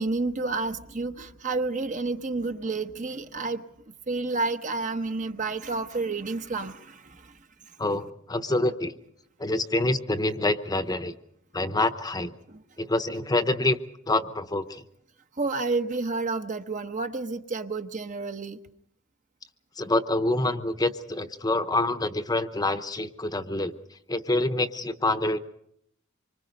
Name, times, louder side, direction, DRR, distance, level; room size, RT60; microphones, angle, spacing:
voice 1, 0.0-3.7 4.1-7.3 12.5-12.6 15.4-18.6, right 3 dB, 40° right, 8 dB, 1.0 m, -30 dB
voice 2, 7.8-8.9 9.4-11.1 11.5-12.3 12.8-13.8 14.1-14.8 19.8-25.4, left 2 dB, 20° left, 10 dB, 0.9 m, -26 dB
26.0 x 24.0 x 5.3 m, 0.71 s
head